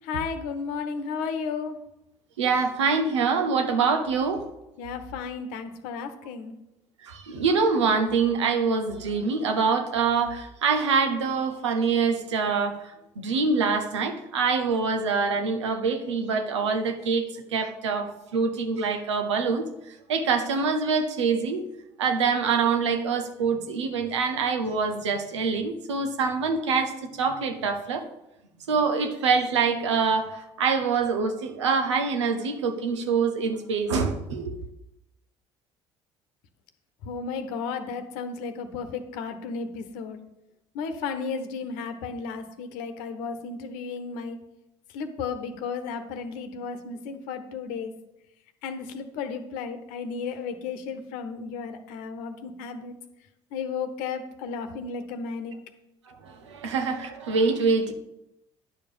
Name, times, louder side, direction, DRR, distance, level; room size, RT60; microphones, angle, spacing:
voice 1, 0.0-1.8 4.8-6.6 37.0-40.2 40.7-44.4 44.9-47.9 48.6-53.0 53.5-55.5 56.6-56.7, left 5 dB, 70° left, 8 dB, 1.0 m, -34 dB
voice 2, 2.4-4.4 7.0-12.8 13.2-19.6 20.1-21.6 22.0-28.0 28.7-34.6 56.1-57.9, right 5 dB, 85° right, 6 dB, 1.0 m, -25 dB
10.0 x 5.0 x 5.4 m, 0.88 s
hypercardioid pair, 60°, 15 cm